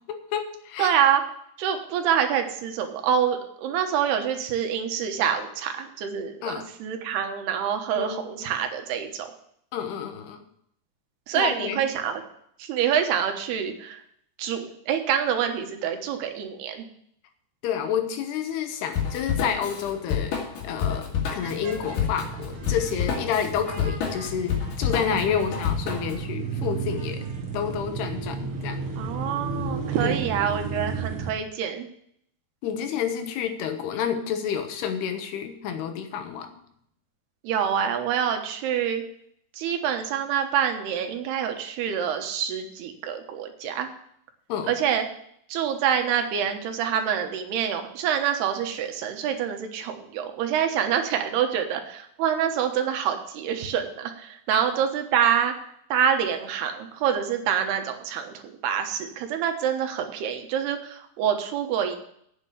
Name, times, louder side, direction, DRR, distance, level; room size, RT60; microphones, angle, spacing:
voice 1, 0.1-1.0 6.4-6.6 8.0-8.5 9.7-10.4 11.3-11.8 17.6-20.3 20.6-27.3 27.5-28.8 30.0-30.1 32.6-36.5 44.5-44.8 54.5-54.6, left 8 dB, 85° left, 7 dB, 3.2 m, -29 dB
voice 2, 0.8-1.2 1.6-6.5 6.8-9.3 11.3-12.2 12.6-14.0 14.4-16.9 29.0-31.9 37.4-39.0 39.6-43.9 44.7-45.0 45.5-55.5 55.9-62.0, right 8 dB, 80° right, 5 dB, 3.3 m, -26 dB
Drum kit / Drum, 18.9-26.2, left 7 dB, 60° left, 3.3 m, -29 dB
sound 1, 21.4-31.3, right 5 dB, 55° right, 1.6 m, -33 dB
8.9 x 7.5 x 8.2 m, 0.69 s
omnidirectional pair, 4.6 m